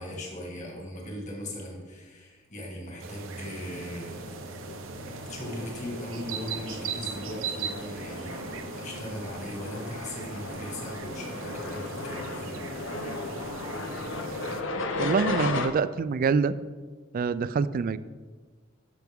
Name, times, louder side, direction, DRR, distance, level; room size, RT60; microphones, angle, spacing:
voice 1, 0.0-4.4 5.3-12.8, left 1 dB, 40° left, -1 dB, 2.0 m, -39 dB
sound 1, 3.0-14.6, right 4 dB, 85° right, 0.8 m, -39 dB
sound 2, 4.0-15.7, left 3 dB, 70° left, 0.8 m, -36 dB
voice 2, 15.0-16.5 17.1-18.0, right 5 dB, 45° right, 15 dB, 0.3 m, -25 dB
12.0 x 5.8 x 3.6 m, 1.4 s
head